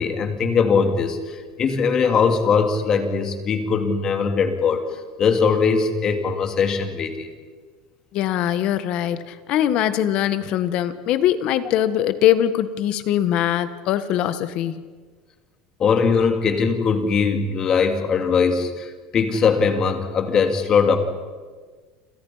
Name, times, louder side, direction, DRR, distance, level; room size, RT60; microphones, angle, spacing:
voice 1, 0.0-7.3 15.8-21.0, left 5 dB, 30° left, 6 dB, 2.8 m, -21 dB
voice 2, 8.1-14.7, left 11 dB, 45° left, 12 dB, 1.5 m, -22 dB
29.5 x 27.0 x 5.8 m, 1.5 s
cardioid pair, 160°, 2 cm